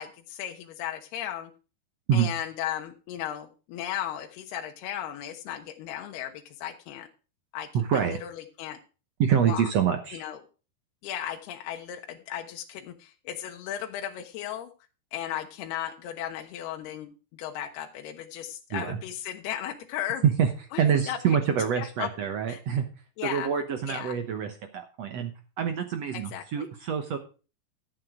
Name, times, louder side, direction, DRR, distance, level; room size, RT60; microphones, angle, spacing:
voice 1, 0.0-1.5 2.1-7.1 7.5-8.8 9.5-9.7 10.1-10.4 11.0-14.7 15.1-20.2 20.7-21.4 21.8-22.1 22.5-22.6 23.2-23.5 23.9-24.2 26.1-26.7, left 11 dB, 80° left, 3 dB, 3.0 m, -36 dB
voice 2, 7.7-8.2 9.2-10.2 18.7-19.0 20.2-20.5 20.8-22.8 23.2-25.3 25.6-27.2, right 8 dB, 75° right, 7 dB, 1.5 m, -26 dB
12.5 x 8.0 x 4.9 m, 0.34 s
omnidirectional pair, 4.6 m